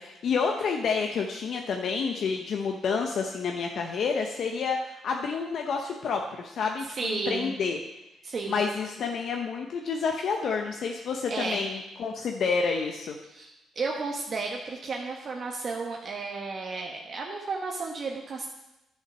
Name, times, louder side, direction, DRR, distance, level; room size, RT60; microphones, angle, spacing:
voice 1, 0.0-7.8 8.5-13.1, left 5 dB, 65° left, 2 dB, 0.8 m, -29 dB
voice 2, 6.9-7.5 8.2-8.6 11.3-11.7 13.3-18.5, right 4 dB, 45° right, 0 dB, 1.1 m, -33 dB
10.0 x 5.7 x 6.1 m, 0.95 s
cardioid pair, 90°, 0 cm